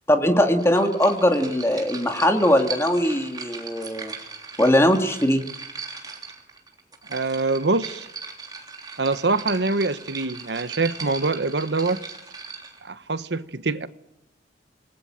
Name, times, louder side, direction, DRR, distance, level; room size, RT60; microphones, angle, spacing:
voice 1, 0.1-4.1 4.6-5.4, equal, 15° left, 2.2 m, -20 dB
sound 1, 0.6-12.8, right 5 dB, 25° right, 3.3 m, -38 dB
voice 2, 7.1-8.1 9.0-12.0 12.8-13.9, right 3 dB, 80° right, 1.2 m, -24 dB
27.5 x 19.5 x 8.8 m
head